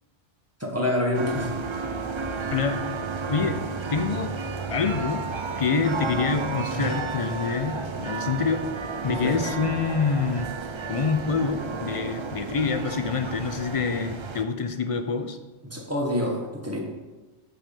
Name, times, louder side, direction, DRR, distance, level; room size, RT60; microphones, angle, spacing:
voice 1, 0.6-1.5 3.4-3.5 9.1-9.4 15.6-16.8, left 1 dB, 15° right, -1 dB, 1.2 m, -27 dB
sound 1, 1.1-14.4, right 4 dB, 45° right, 0.4 m, -32 dB
voice 2, 2.5-2.8 3.3-3.6 3.9-4.3 4.7-5.2 5.6-8.6 9.0-10.5 10.9-15.4, left 5 dB, 50° left, 8 dB, 0.4 m, -26 dB
6.3 x 4.8 x 6.7 m, 1.2 s
omnidirectional pair, 1.1 m